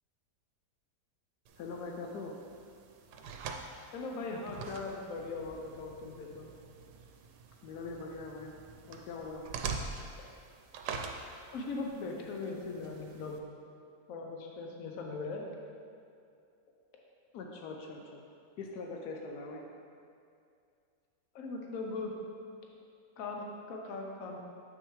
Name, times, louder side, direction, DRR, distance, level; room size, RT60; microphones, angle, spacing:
sound 1, 1.5-13.4, right 4 dB, 85° right, 1.2 m, -45 dB
voice 1, 1.6-2.3 7.6-8.5 8.9-9.4 17.3-18.2 18.6-19.7, left 3 dB, 80° left, 1 dB, 1.2 m, -42 dB
voice 2, 3.9-6.5 11.5-13.4 14.1-15.4 21.3-22.1 23.2-24.4, left 3 dB, 60° left, 0 dB, 1.2 m, -39 dB
7.9 x 6.2 x 3.2 m, 2.4 s
omnidirectional pair, 1.7 m